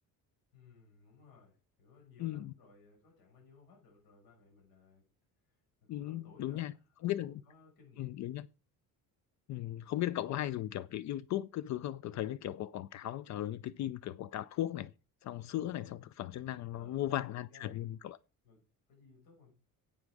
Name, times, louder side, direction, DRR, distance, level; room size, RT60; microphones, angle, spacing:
voice 1, 0.5-5.0 5.9-8.2 16.7-17.8 18.4-19.5, left 4 dB, 80° left, 6.3 m, -60 dB
voice 2, 2.2-2.5 5.9-6.7 7.0-7.4 8.0-8.5 9.5-14.9 15.2-18.2, left 13 dB, 50° left, 0.4 m, -37 dB
11.5 x 8.6 x 4.8 m
cardioid pair, 155°, 36 cm